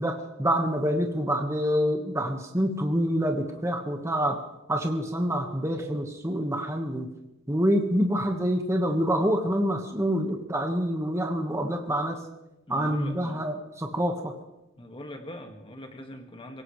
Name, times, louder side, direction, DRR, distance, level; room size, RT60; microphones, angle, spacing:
voice 1, 0.0-4.4 4.7-7.1 7.5-12.2 12.7-14.3, equal, 15° right, 3 dB, 1.5 m, -26 dB
voice 2, 12.7-13.5 13.9-14.0 14.8-16.6, left 1 dB, 25° left, 4 dB, 2.0 m, -42 dB
24.0 x 17.0 x 3.3 m, 0.95 s
head